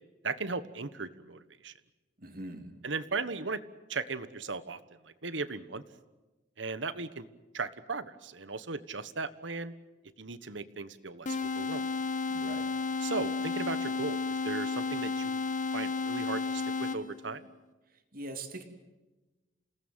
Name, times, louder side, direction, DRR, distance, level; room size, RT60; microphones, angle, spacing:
voice 1, 0.2-1.7 2.8-3.6 3.9-4.8 5.0-5.8 6.6-7.2 7.5-9.7 10.2-11.8 13.0-15.4 15.7-17.5, right 4 dB, 80° right, 13 dB, 1.4 m, -37 dB
voice 2, 2.2-2.7 12.3-12.7 18.1-18.6, right 2 dB, 50° right, 6 dB, 3.0 m, -42 dB
sound 1, 11.2-17.3, left 4 dB, 45° left, 1.3 m, -32 dB
28.5 x 18.5 x 9.1 m, 1.1 s
head